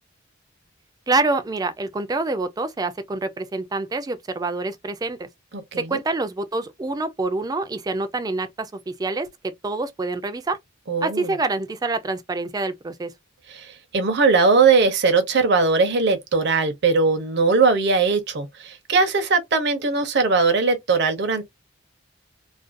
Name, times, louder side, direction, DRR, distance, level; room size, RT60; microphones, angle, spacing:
voice 1, 1.1-5.3 5.8-9.3 9.6-10.6 11.0-13.1, right 3 dB, 20° right, 0.3 m, -26 dB
voice 2, 5.5-6.0 10.9-11.3 13.5-13.7 13.9-21.4, right 4 dB, 60° right, 0.6 m, -20 dB
2.4 x 2.2 x 2.5 m
head